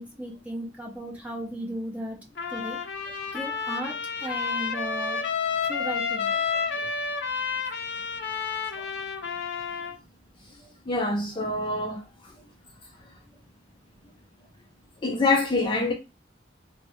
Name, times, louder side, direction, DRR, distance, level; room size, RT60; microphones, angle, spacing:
voice 1, 0.0-2.2 2.5-2.8 3.3-5.2 5.7-6.3, equal, 10° right, 0.9 m, -35 dB
Trumpet, 2.4-10.0, left 5 dB, 75° left, 0.6 m, -30 dB
voice 2, 6.5-6.8 8.7-8.8 10.9-12.3 15.0-15.9, left 3 dB, 25° left, 0.4 m, -26 dB
3.4 x 2.0 x 3.0 m
head